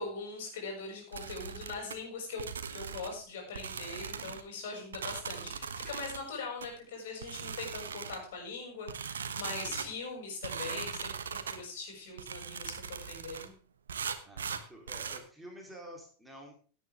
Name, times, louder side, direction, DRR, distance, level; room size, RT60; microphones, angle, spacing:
voice 1, 0.0-13.5, left 4 dB, 55° left, 1 dB, 6.5 m, -41 dB
sound 1, 1.1-2.0 2.4-3.2 3.5-4.4 4.9-6.2 6.6-6.7 7.2-8.3 8.9-9.9 10.4-11.6 12.2-13.5 13.9-15.2, right 6 dB, 65° right, 1.1 m, -39 dB
voice 2, 5.2-5.6 9.6-9.9 14.2-16.5, equal, 5° right, 0 dB, 3.5 m, -50 dB
17.0 x 9.2 x 3.6 m, 0.40 s
figure-of-eight pair, 90°, 0 cm